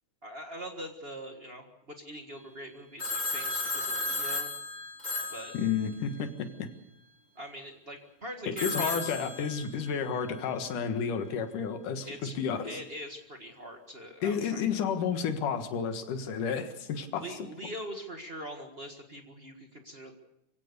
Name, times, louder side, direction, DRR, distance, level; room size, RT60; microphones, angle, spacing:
voice 1, 0.2-4.5 5.3-5.6 7.3-9.1 12.0-14.8 17.1-20.1, equal, 35° right, 4 dB, 0.9 m, -43 dB
Telephone, 3.0-6.3 8.6-10.1, left 2 dB, 15° left, 2.8 m, -34 dB
voice 2, 5.5-6.7 8.6-12.7 14.2-17.2, left 6 dB, 70° left, 7 dB, 3.1 m, -31 dB
25.5 x 16.5 x 6.8 m, 0.81 s
omnidirectional pair, 3.9 m